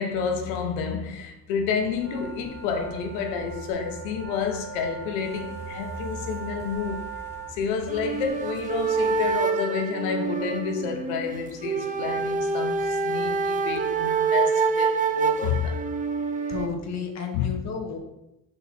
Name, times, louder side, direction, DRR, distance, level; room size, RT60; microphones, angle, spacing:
voice 1, 0.0-7.1 7.5-15.8 17.3-17.5, left 6 dB, 85° left, 1.0 m, -29 dB
sound 1, 1.7-9.3, left 1 dB, 5° left, 1.1 m, -44 dB
sound 2, 1.9-7.6, right 6 dB, 35° right, 2.3 m, -40 dB
sound 3, 7.9-16.7, right 5 dB, 20° right, 0.5 m, -26 dB
voice 2, 16.5-18.0, left 5 dB, 40° left, 1.3 m, -32 dB
5.4 x 4.2 x 4.3 m
supercardioid pair, 85°, 42 cm